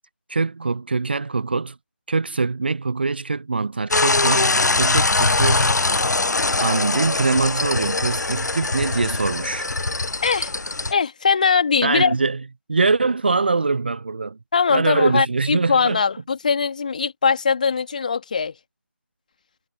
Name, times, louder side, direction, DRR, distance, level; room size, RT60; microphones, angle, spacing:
voice 1, 0.3-1.7 2.1-5.8 6.6-9.7 11.8-12.4 12.7-14.4 14.7-16.0, right 4 dB, 30° right, 1.0 m, -23 dB
sound 1, 3.9-10.9, left 3 dB, 60° left, 0.5 m, -22 dB
voice 2, 10.2-10.5 10.9-12.2 14.5-18.5, left 5 dB, 25° left, 2.1 m, -21 dB
figure-of-eight pair, 165°, 10 cm